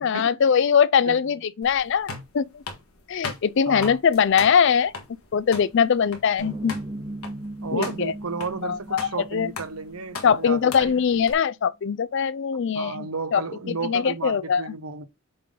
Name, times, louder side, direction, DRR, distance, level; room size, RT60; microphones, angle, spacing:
voice 1, 0.0-2.1 2.3-2.5 3.1-4.9 5.3-6.8 7.7-8.1 8.6-9.5 10.2-13.4 13.8-14.7, left 7 dB, 55° left, 0.4 m, -21 dB
voice 2, 1.1-1.4 3.7-4.0 7.6-11.0 12.7-15.0, right 4 dB, 80° right, 1.0 m, -33 dB
sound 1, 1.6-11.3, left 4 dB, 80° left, 1.6 m, -39 dB
sound 2, 6.4-10.7, right 1 dB, 25° right, 1.5 m, -37 dB
6.8 x 3.8 x 3.8 m
head